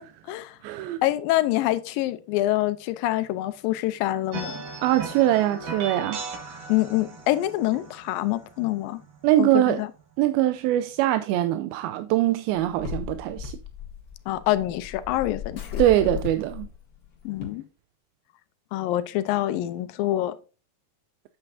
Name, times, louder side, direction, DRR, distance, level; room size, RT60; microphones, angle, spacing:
voice 1, 0.0-0.6 1.0-4.6 6.7-9.0 9.4-9.9 14.3-15.8 17.3-17.6 18.7-20.4, left 15 dB, 80° left, 2.3 m, -26 dB
voice 2, 0.6-1.0 4.8-6.7 9.2-9.8 10.2-13.6 15.8-16.7, right 13 dB, 90° right, 2.5 m, -23 dB
sound 1, 4.3-9.7, right 4 dB, 65° right, 3.5 m, -38 dB
sound 2, 12.6-17.4, left 7 dB, 45° left, 1.2 m, -36 dB
8.6 x 8.1 x 2.7 m
omnidirectional pair, 4.2 m